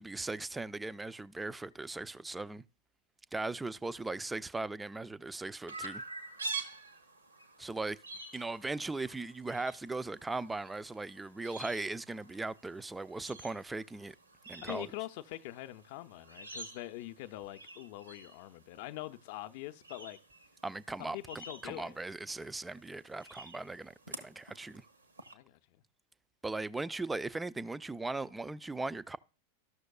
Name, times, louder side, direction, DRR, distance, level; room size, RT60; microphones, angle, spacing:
voice 1, 0.0-2.6 3.3-6.0 7.6-8.0 8.3-14.1 14.5-14.9 20.6-24.8 26.4-29.2, right 3 dB, 10° right, 0.3 m, -38 dB
Chirp tweet, 5.7-25.3, right 3 dB, 80° right, 0.9 m, -48 dB
voice 2, 14.6-20.2 21.0-22.0 25.3-25.8, left 17 dB, 50° left, 0.5 m, -44 dB
14.0 x 6.3 x 2.3 m
figure-of-eight pair, 90°, 0 cm